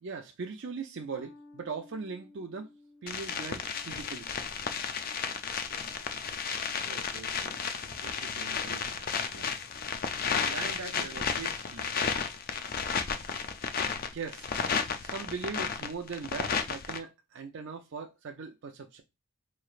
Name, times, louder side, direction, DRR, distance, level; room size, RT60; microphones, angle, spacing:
voice 1, 0.0-2.7 3.0-4.3 14.1-14.5 15.0-19.0, right 4 dB, 55° right, 0.4 m, -39 dB
sound 1, 1.1-7.9, left 2 dB, 85° left, 1.4 m, -58 dB
sound 2, 3.1-17.0, left 6 dB, 40° left, 0.4 m, -33 dB
voice 2, 6.8-9.6 10.2-12.2, right 4 dB, 85° right, 0.8 m, -45 dB
4.8 x 3.1 x 2.4 m
head